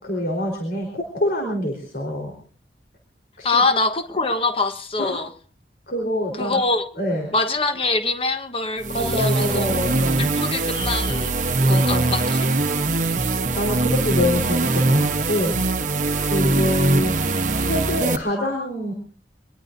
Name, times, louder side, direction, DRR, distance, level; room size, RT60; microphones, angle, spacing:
voice 1, 0.0-2.3 3.4-3.6 5.0-5.2 5.9-6.6 7.0-7.3 8.9-10.3 11.6-12.2 13.5-18.9, left 1 dB, 55° left, 4.1 m, -26 dB
voice 2, 3.4-5.3 6.3-6.8 7.3-9.6 10.2-11.4 11.6-12.5, left 3 dB, 30° left, 1.3 m, -24 dB
sound 1, 8.8-18.2, right 2 dB, 45° right, 1.0 m, -22 dB
25.5 x 20.5 x 2.7 m
head